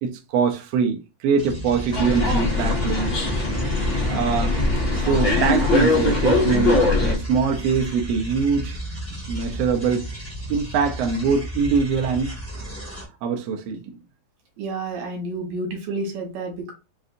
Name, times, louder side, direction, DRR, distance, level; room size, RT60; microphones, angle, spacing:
voice 1, 0.0-3.2 4.1-4.6 5.0-8.8 9.3-10.1 10.5-12.3 13.2-13.8, right 5 dB, 85° right, 1.4 m, -23 dB
sound 1, 1.4-13.0, right 1 dB, 5° left, 1.0 m, -34 dB
sound 2, 1.9-7.1, left 3 dB, 90° left, 0.6 m, -21 dB
voice 2, 14.6-16.7, right 2 dB, 65° right, 2.4 m, -30 dB
5.4 x 2.6 x 2.5 m
omnidirectional pair, 3.6 m